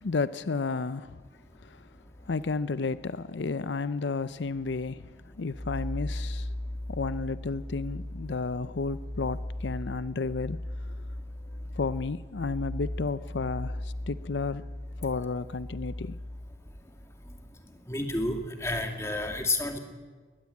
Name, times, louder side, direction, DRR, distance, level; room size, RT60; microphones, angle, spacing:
voice 1, 0.0-1.2 1.6-1.9 2.2-6.5 6.9-10.9 11.7-14.6 15.0-16.2, left 4 dB, 85° left, 0.6 m, -32 dB
sound 1, 1.4-3.1 3.6-3.7 4.3-16.5, left 1 dB, 55° left, 4.5 m, -38 dB
voice 2, 17.9-19.8, left 2 dB, 15° left, 2.3 m, -30 dB
21.0 x 20.0 x 8.4 m
head